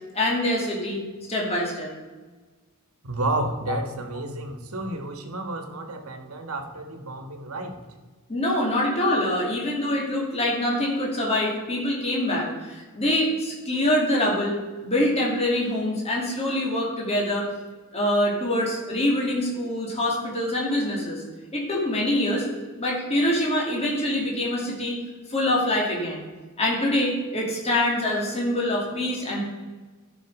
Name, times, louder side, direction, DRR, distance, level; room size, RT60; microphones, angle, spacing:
voice 1, 0.1-1.0 1.3-1.9 8.3-14.5 14.8-17.5 17.9-21.2 21.5-22.5 22.8-25.0 25.3-26.3 26.6-29.4, left 1 dB, 30° left, -3 dB, 2.4 m, -25 dB
voice 2, 3.0-7.8, right 2 dB, 75° right, 4 dB, 1.4 m, -31 dB
13.0 x 6.2 x 4.8 m, 1.3 s
head